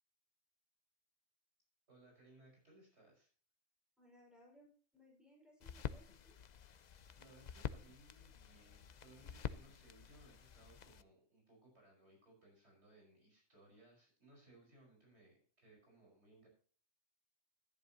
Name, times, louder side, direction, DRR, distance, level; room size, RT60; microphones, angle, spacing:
voice 1, 1.9-3.3 6.9-16.5, right 2 dB, 55° right, -1 dB, 5.5 m, -65 dB
voice 2, 4.0-6.4, equal, ahead, -2 dB, 5.3 m, -65 dB
sound 1, 5.6-11.0, left 7 dB, 50° left, 0.5 m, -48 dB
12.5 x 11.0 x 2.9 m, 0.42 s
omnidirectional pair, 1.3 m